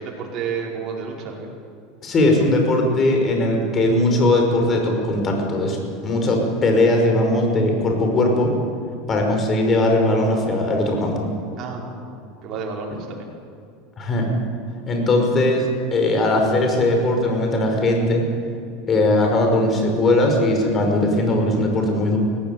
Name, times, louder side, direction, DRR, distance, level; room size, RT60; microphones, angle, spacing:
voice 1, 0.0-1.5 9.1-9.3 11.5-11.9 12.4-13.3, right 5 dB, 45° right, -2 dB, 5.2 m, -30 dB
voice 2, 2.0-8.5 9.1-11.3 14.0-14.3 14.9-18.3 18.9-22.2, left 1 dB, 35° left, 3 dB, 5.6 m, -19 dB
18.5 x 16.0 x 9.5 m, 2.4 s
hypercardioid pair, 85°, 0 cm